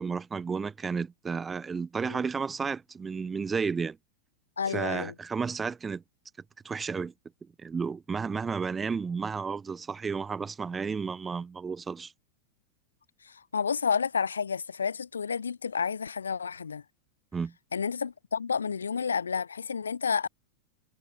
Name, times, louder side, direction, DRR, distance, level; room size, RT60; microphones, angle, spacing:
voice 1, 0.0-4.0 4.7-6.0 6.6-7.1 7.6-12.1 17.3-17.5, right 5 dB, 15° right, 3.5 m, -32 dB
voice 2, 4.6-5.1 13.2-16.8 17.7-20.3, left 6 dB, 70° left, 4.5 m, -30 dB
figure-of-eight pair, 90°, 0 cm